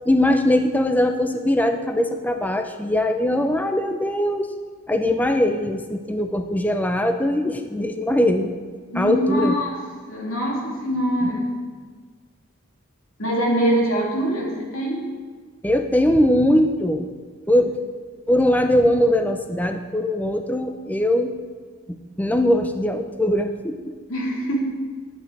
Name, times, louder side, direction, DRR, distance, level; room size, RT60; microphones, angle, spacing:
voice 1, 0.1-4.5 4.9-8.5 9.0-9.5 15.6-17.1 17.5-17.7 18.3-21.3 21.9-23.8, left 1 dB, 10° left, 6 dB, 0.5 m, -21 dB
voice 2, 8.9-9.7 10.1-11.5 13.2-15.0 24.1-24.6, right 1 dB, 75° left, -3 dB, 2.9 m, -23 dB
11.5 x 8.4 x 4.7 m, 1.5 s
head